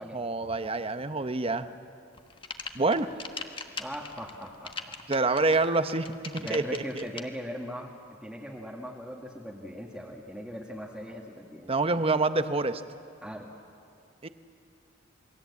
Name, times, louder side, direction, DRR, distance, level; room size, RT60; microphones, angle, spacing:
voice 1, 0.1-1.7 2.7-3.1 5.1-6.1 6.5-7.0 11.7-12.8 14.2-14.3, right 3 dB, 30° right, 10 dB, 0.9 m, -26 dB
sound 1, 2.1-7.2, left 4 dB, 25° left, 1.3 m, -40 dB
voice 2, 3.8-5.0 6.4-7.9 8.2-11.8 13.2-13.5, equal, 5° right, -2 dB, 1.7 m, -39 dB
28.0 x 21.5 x 8.3 m, 2.4 s
head